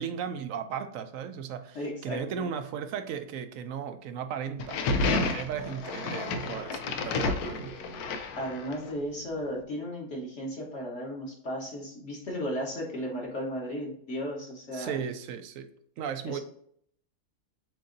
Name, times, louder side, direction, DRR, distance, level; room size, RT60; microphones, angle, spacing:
voice 1, 0.0-4.8 5.3-7.8 14.7-15.7 16.0-16.4, right 7 dB, 70° right, 9 dB, 0.9 m, -36 dB
voice 2, 1.7-2.4 8.4-15.0 16.2-16.4, equal, 55° left, -2 dB, 1.4 m, -35 dB
sound 1, 4.6-8.9, left 3 dB, 80° left, 1.2 m, -30 dB
7.5 x 2.7 x 2.6 m, 0.65 s
omnidirectional pair, 1.6 m